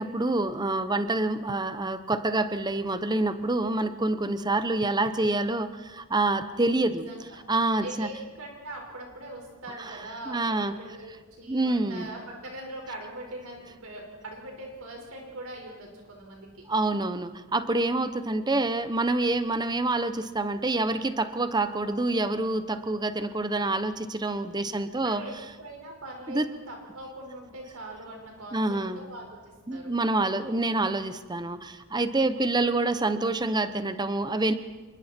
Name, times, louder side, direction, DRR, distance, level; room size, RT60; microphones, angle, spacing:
voice 1, 0.0-7.1 7.5-8.1 10.3-10.7 11.5-12.0 16.7-25.2 26.3-26.5 28.5-29.0 29.7-34.5, right 2 dB, 20° right, 11 dB, 0.9 m, -27 dB
voice 2, 7.8-16.6 24.6-29.9 32.3-32.4, right 1 dB, 70° right, 0 dB, 5.1 m, -42 dB
27.0 x 23.0 x 4.4 m, 1.3 s
head